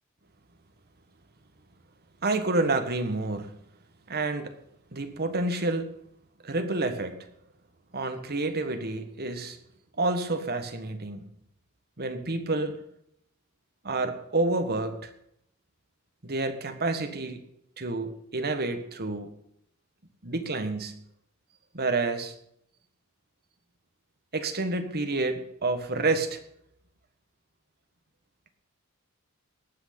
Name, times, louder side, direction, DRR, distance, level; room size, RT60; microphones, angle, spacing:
voice 1, 2.2-3.6 4.1-4.5 4.9-5.9 6.4-7.2 7.9-9.6 10.0-11.2 12.0-12.8 13.8-15.1 16.2-17.4 17.8-19.3 20.2-21.0 21.7-22.3 24.3-26.4, right 2 dB, 45° right, 7 dB, 1.6 m, -29 dB
18.0 x 6.3 x 8.6 m, 0.73 s
head